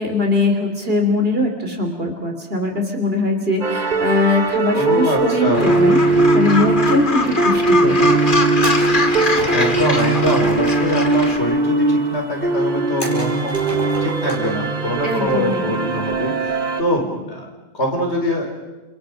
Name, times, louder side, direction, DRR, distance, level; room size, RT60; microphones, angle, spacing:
voice 1, 0.0-6.0 6.3-8.0 15.0-15.6, left 2 dB, 60° right, 4 dB, 3.4 m, -21 dB
sound 1, 3.6-16.8, right 2 dB, 40° right, 1.5 m, -19 dB
voice 2, 4.7-5.7 9.5-18.5, left 1 dB, 80° left, 1 dB, 5.1 m, -24 dB
Gull seagull, 5.5-11.4, left 3 dB, 50° left, 2.2 m, -23 dB
sound 2, 8.6-10.3 13.0-14.6 15.0-15.1 16.7-17.0, equal, 20° left, 5.5 m, -31 dB
29.5 x 27.0 x 5.2 m, 1.1 s
omnidirectional pair, 1.1 m